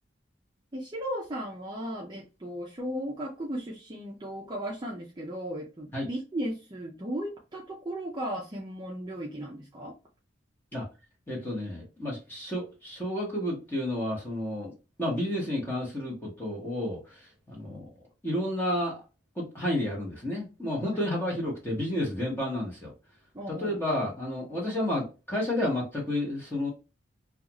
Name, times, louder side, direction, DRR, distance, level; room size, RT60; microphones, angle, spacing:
voice 1, 0.7-9.9 23.3-24.1, equal, 20° right, 0.4 m, -36 dB
voice 2, 11.3-14.7 15.0-17.9 18.2-19.0 19.3-22.9 23.5-26.7, left 1 dB, 10° left, 1.0 m, -31 dB
2.5 x 2.4 x 2.9 m
head